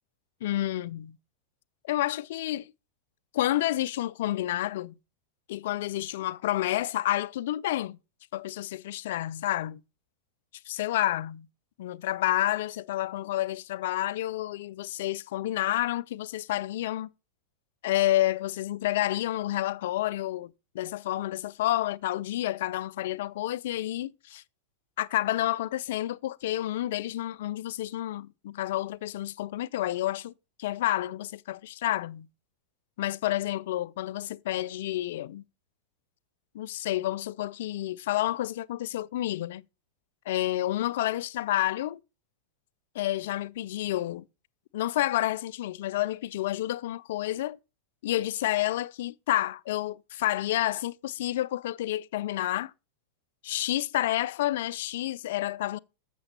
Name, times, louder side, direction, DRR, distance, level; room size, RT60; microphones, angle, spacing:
voice 1, 0.4-1.2 1.8-2.6 3.3-4.9 5.5-8.0 8.3-9.8 10.7-11.4 11.8-17.1 17.8-24.4 25.0-30.3 30.6-32.3 33.0-35.4 36.5-39.6 40.3-42.0 42.9-44.2 44.7-47.6 48.0-52.7 53.4-55.8, left 14 dB, 55° left, 0.4 m, -29 dB
7.1 x 6.8 x 5.3 m
figure-of-eight pair, 90°, 0 cm